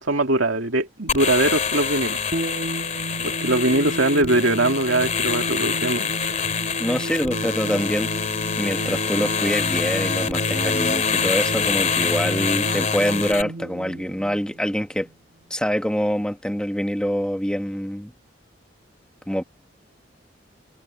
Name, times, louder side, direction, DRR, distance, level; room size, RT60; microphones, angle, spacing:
voice 1, 0.0-2.5 3.2-6.1, right 2 dB, 80° right, 2.5 m, -22 dB
sound 1, 1.1-13.4, left 6 dB, 35° left, 3.1 m, -25 dB
sound 2, 2.3-15.1, right 1 dB, 50° right, 2.1 m, -33 dB
voice 2, 6.8-8.1 8.6-15.1 15.5-18.1 19.3-19.4, equal, 5° left, 1.5 m, -25 dB
head